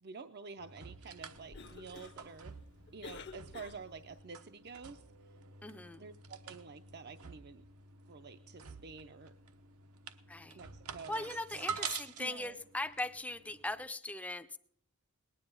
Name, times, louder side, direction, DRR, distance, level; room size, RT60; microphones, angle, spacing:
voice 1, 0.0-2.6 2.9-5.0 6.0-7.6 8.1-9.3 10.5-11.8 12.2-12.6, right 5 dB, 45° right, 8 dB, 0.5 m, -49 dB
sound 1, 0.6-13.9, right 6 dB, 85° right, 1.0 m, -48 dB
Cough, 1.3-4.2, left 4 dB, 50° left, 0.9 m, -52 dB
voice 2, 5.6-6.0 10.3-10.6 11.1-14.6, left 2 dB, 5° left, 10 dB, 0.5 m, -39 dB
19.5 x 10.0 x 5.4 m, 0.67 s
head